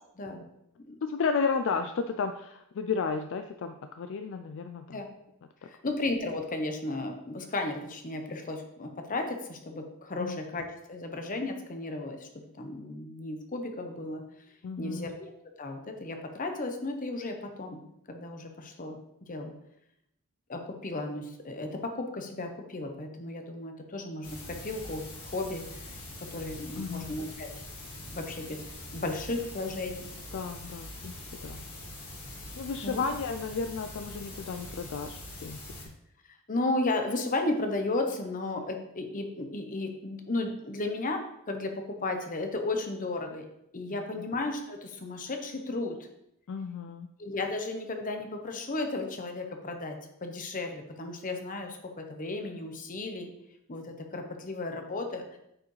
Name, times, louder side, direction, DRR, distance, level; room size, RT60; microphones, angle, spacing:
voice 1, 0.1-0.5 0.8-1.0 4.9-5.1 5.6-12.3 12.5-14.2 14.8-15.3 15.6-17.8 18.1-19.0 19.3-19.5 20.5-25.9 26.3-27.5 28.1-28.6 28.9-30.1 32.8-33.1 35.8-35.9 36.5-43.5 43.7-46.0 47.2-53.3 53.7-55.2, left 2 dB, 35° left, 5 dB, 0.8 m, -34 dB
voice 2, 1.0-5.0 5.6-5.7 10.2-10.4 14.6-15.1 26.8-27.1 30.3-31.1 31.4-31.6 32.6-36.0 43.9-44.0 46.5-47.1, left 5 dB, 60° left, 7 dB, 0.3 m, -33 dB
sound 1, 24.2-35.9, left 1 dB, 75° left, 1.7 m, -43 dB
8.6 x 4.8 x 3.2 m, 0.81 s
head